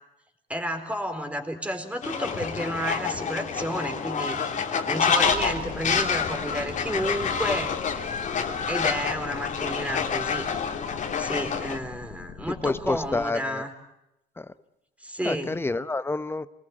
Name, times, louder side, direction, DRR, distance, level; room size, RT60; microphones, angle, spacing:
voice 1, 0.5-4.4 4.9-8.0 8.7-10.5 11.2-13.7 15.0-15.6, equal, 10° right, 6 dB, 4.1 m, -31 dB
Fowl, 2.0-11.8, left 6 dB, 45° left, 3.0 m, -28 dB
sound 1, 5.2-13.3, left 6 dB, 65° left, 3.9 m, -43 dB
voice 2, 12.6-13.6 14.4-14.5 15.2-16.5, left 2 dB, 15° left, 14 dB, 0.9 m, -28 dB
28.5 x 20.0 x 8.7 m, 0.86 s
cardioid pair, 110°, 17 cm